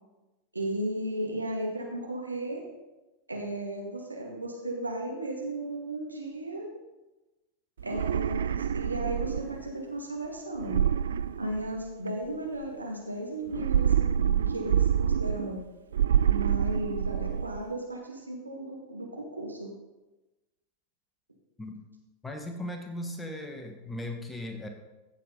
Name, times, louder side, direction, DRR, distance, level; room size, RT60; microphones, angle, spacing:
voice 1, 0.5-2.7 3.3-6.7 7.8-10.8 11.4-15.6 16.2-19.7, right 1 dB, 85° right, 0 dB, 2.0 m, -35 dB
sound 1, 7.8-9.7 10.6-12.1 13.5-15.6 15.9-17.6, right 9 dB, 65° right, 0.3 m, -27 dB
voice 2, 22.2-24.7, left 1 dB, 10° left, 4 dB, 1.4 m, -37 dB
15.0 x 7.0 x 3.9 m, 1.1 s
figure-of-eight pair, 90°, 0 cm